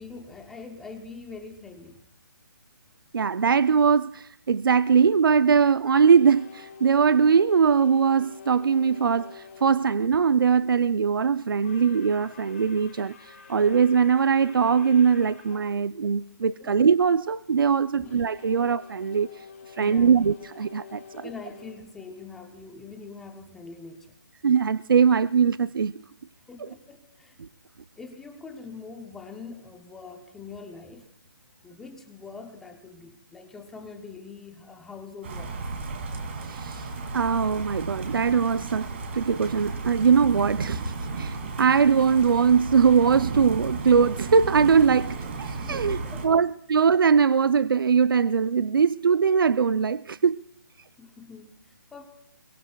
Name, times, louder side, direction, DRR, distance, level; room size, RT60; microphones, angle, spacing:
voice 1, 0.0-2.0 16.6-16.8 17.9-18.1 18.5-18.6 19.8-20.1 21.1-24.2 26.4-27.4 28.0-31.1 31.6-35.6 45.6-46.5 51.0-52.1, left 4 dB, 5° left, 0.6 m, -43 dB
voice 2, 3.1-19.4 19.8-21.3 24.4-25.9 26.6-26.7 36.4-46.0 46.2-50.4, right 6 dB, 85° right, 0.5 m, -21 dB
sound 1, 6.0-9.8 11.5-15.7 18.0-22.8, left 6 dB, 40° left, 5.1 m, -47 dB
sound 2, 35.2-46.3, right 3 dB, 35° right, 2.5 m, -34 dB
25.5 x 23.0 x 2.3 m
hypercardioid pair, 170°, 11 cm